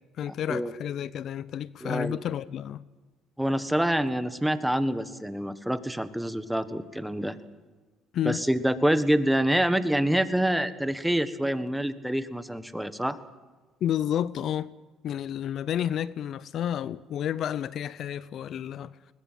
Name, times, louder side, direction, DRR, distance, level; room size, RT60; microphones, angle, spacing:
voice 1, 0.2-2.8 8.1-8.4 13.8-14.7 15.0-18.9, left 10 dB, 60° left, 0.6 m, -30 dB
voice 2, 1.8-2.2 3.4-7.4 8.2-13.2, right 1 dB, 5° right, 1.5 m, -26 dB
22.0 x 20.0 x 7.6 m
supercardioid pair, 95°, 0 cm